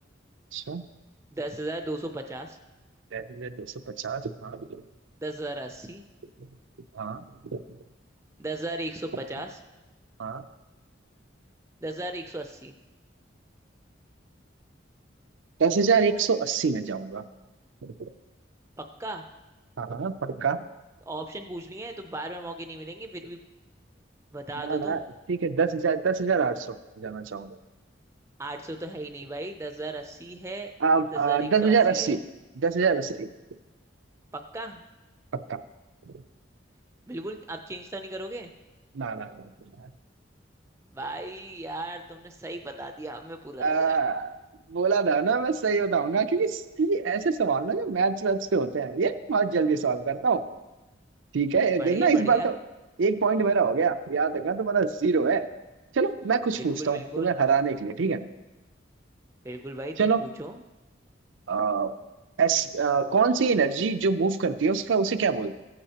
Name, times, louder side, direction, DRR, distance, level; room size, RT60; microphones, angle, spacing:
voice 1, 0.5-0.8 3.1-4.8 6.9-7.2 7.5-7.6 10.2-10.4 15.6-17.2 17.8-17.9 19.8-20.6 24.6-25.0 25.3-27.6 30.8-32.2 32.6-33.3 35.5-35.6 36.1-36.2 38.9-39.4 43.6-44.3 44.7-50.4 51.3-52.5 53.0-55.5 55.9-58.3 60.0-60.2 61.5-61.9 62.4-65.5, right 5 dB, 90° right, 10 dB, 0.5 m, -25 dB
voice 2, 1.3-2.6 5.2-6.0 8.4-9.6 11.8-12.7 18.8-19.2 21.0-23.4 24.3-25.0 28.4-30.7 31.1-32.2 34.3-34.8 37.1-38.5 40.9-44.0 51.8-52.5 56.5-57.4 59.4-60.6, right 2 dB, 15° right, 5 dB, 0.4 m, -36 dB
15.0 x 8.8 x 2.9 m, 1.1 s
head